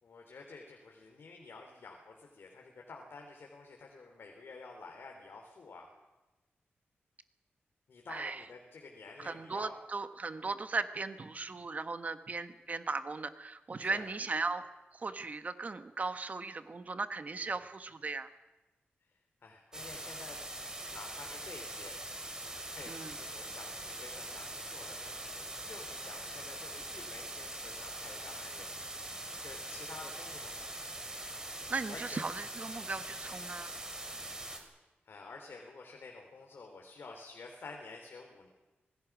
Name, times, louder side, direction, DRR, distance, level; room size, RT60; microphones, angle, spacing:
voice 1, 0.0-5.9 7.9-9.8 13.8-14.0 17.4-17.6 19.4-20.4 20.9-22.0 22.7-28.7 29.4-30.7 31.9-32.2 35.0-38.5, left 3 dB, 65° left, 2 dB, 3.3 m, -50 dB
voice 2, 8.1-8.4 9.2-14.6 14.9-18.3 22.9-23.1 31.7-33.7, right 4 dB, 40° right, 10 dB, 1.2 m, -37 dB
sound 1, 19.7-34.6, right 1 dB, 15° right, 3.5 m, -43 dB
26.0 x 19.0 x 6.1 m, 1.1 s
wide cardioid pair, 125°, 4 cm